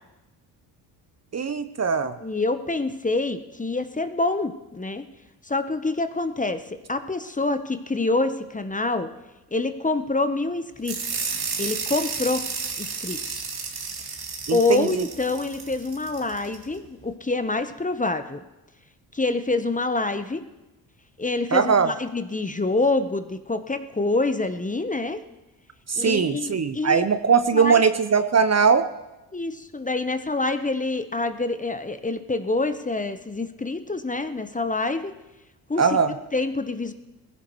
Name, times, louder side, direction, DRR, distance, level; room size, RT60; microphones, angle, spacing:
voice 1, 1.3-2.1 14.5-15.1 21.5-21.9 25.9-28.9 35.8-36.1, right 6 dB, 30° right, 11 dB, 0.9 m, -20 dB
voice 2, 2.2-5.0 5.4-9.1 9.5-11.3 11.6-12.5 12.8-13.5 14.5-18.4 19.1-20.4 21.2-25.2 25.9-27.1 27.5-27.8 29.3-35.1 35.7-36.0 36.3-36.9, left 2 dB, 15° left, 9 dB, 1.0 m, -26 dB
sound 1, 10.8-16.6, right 5 dB, 50° right, 2.5 m, -32 dB
21.0 x 15.5 x 3.2 m, 1.0 s
hypercardioid pair, 55°, 49 cm